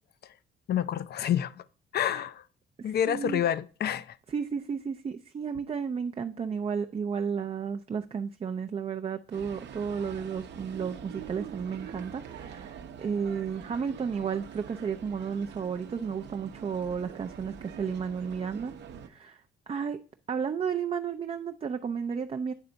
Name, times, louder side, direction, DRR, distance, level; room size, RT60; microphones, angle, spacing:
voice 1, 0.7-1.6 1.9-2.4 2.8-4.2, left 10 dB, 55° left, 0.5 m, -28 dB
voice 2, 2.8-3.4 4.3-18.7 19.0-20.0 20.3-22.5, right 6 dB, 30° right, 0.4 m, -33 dB
sound 1, 9.3-19.1, right 8 dB, 65° right, 0.7 m, -45 dB
9.0 x 3.3 x 3.9 m
cardioid pair, 90°, 20 cm